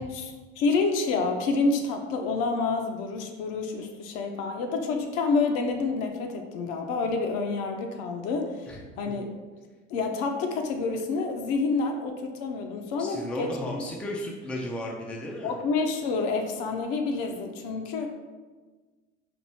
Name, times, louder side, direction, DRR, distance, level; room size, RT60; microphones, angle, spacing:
voice 1, 0.0-8.7 9.0-9.3 9.9-13.8 15.4-18.1, left 4 dB, 45° left, 4 dB, 0.7 m, -28 dB
voice 2, 13.0-15.6, left 1 dB, 5° left, -1 dB, 0.4 m, -34 dB
4.5 x 2.7 x 4.3 m, 1.3 s
figure-of-eight pair, 70°, 37 cm